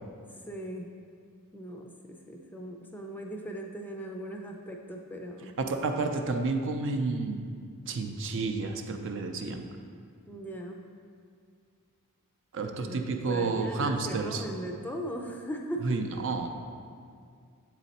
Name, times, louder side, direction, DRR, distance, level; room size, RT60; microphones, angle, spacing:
voice 1, 0.5-0.9 1.5-5.5 10.3-10.8 12.6-16.3, equal, 10° left, 1 dB, 0.4 m, -39 dB
voice 2, 5.6-7.4 7.9-9.7 12.5-14.4 15.8-16.5, right 3 dB, 60° right, 5 dB, 0.5 m, -30 dB
7.3 x 4.1 x 4.1 m, 2.2 s
head